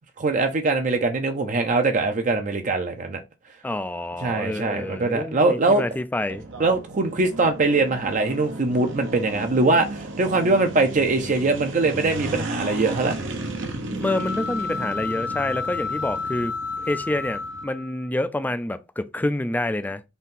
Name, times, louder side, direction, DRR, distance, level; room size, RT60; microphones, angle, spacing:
voice 1, 0.2-3.2 4.2-5.8 6.6-13.2, right 3 dB, 40° right, 0.6 m, -22 dB
voice 2, 3.6-6.5 13.9-16.6 16.9-20.0, left 1 dB, 10° left, 0.3 m, -28 dB
sound 1, 6.3-17.6, right 2 dB, 75° right, 0.9 m, -34 dB
sound 2, 14.0-18.1, left 4 dB, 70° left, 0.6 m, -31 dB
4.0 x 2.7 x 3.7 m
head